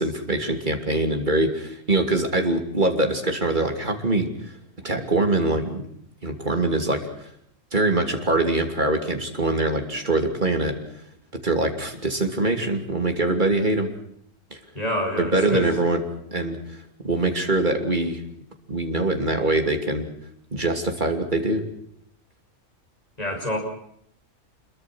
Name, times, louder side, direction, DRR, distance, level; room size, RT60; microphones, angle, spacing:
voice 1, 0.0-4.3 4.8-5.8 6.2-7.0 7.7-10.7 11.4-13.9 15.2-16.0 16.3-16.6 17.0-18.2 18.7-20.1 20.5-21.6, right 2 dB, 30° right, 5 dB, 3.1 m, -23 dB
voice 2, 14.8-15.8 23.2-23.6, left 1 dB, 25° left, 0 dB, 6.9 m, -27 dB
26.5 x 22.5 x 6.3 m, 0.69 s
omnidirectional pair, 1.5 m